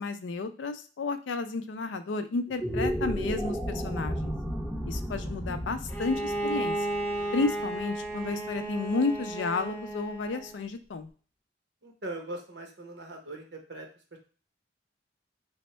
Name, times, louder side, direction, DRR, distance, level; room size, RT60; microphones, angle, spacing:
voice 1, 0.0-4.3 4.8-6.8 7.3-11.1, left 3 dB, 90° left, 9 dB, 0.4 m, -32 dB
sound 1, 2.5-8.9, equal, 5° right, 0.5 m, -34 dB
Bowed string instrument, 5.9-10.6, right 1 dB, 15° left, 0.8 m, -33 dB
voice 2, 11.8-14.2, right 2 dB, 70° right, 2 dB, 1.0 m, -41 dB
3.5 x 2.1 x 4.3 m, 0.40 s
head